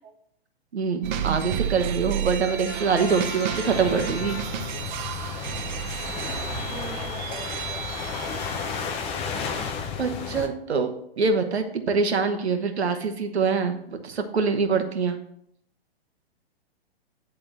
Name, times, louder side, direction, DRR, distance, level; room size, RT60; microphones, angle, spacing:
voice 1, 0.7-4.4 9.1-9.7 10.0-15.2, right 5 dB, 90° right, 6 dB, 1.3 m, -25 dB
sound 1, 1.0-8.9, right 9 dB, 45° right, 0.8 m, -32 dB
Brass instrument, 2.4-5.1, left 6 dB, 90° left, 1.1 m, -39 dB
sound 2, 3.7-10.5, left 6 dB, 20° left, 0.6 m, -33 dB
voice 2, 6.7-8.6, right 5 dB, 20° right, 3 dB, 0.9 m, -43 dB
10.5 x 3.8 x 6.0 m, 0.71 s
hypercardioid pair, 135°, 32 cm